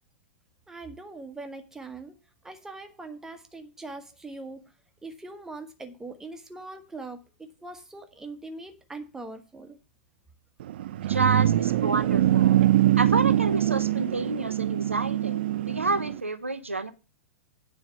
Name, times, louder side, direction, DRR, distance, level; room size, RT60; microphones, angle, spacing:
voice 1, 0.7-2.2 2.4-4.6 5.0-7.2 7.6-9.8, right 3 dB, 5° right, 1.3 m, -41 dB
sound 1, 10.6-16.2, right 13 dB, 50° right, 0.4 m, -23 dB
voice 2, 11.0-12.6 13.0-16.9, right 3 dB, 80° right, 0.8 m, -29 dB
9.3 x 4.7 x 7.3 m
figure-of-eight pair, 100°, 7 cm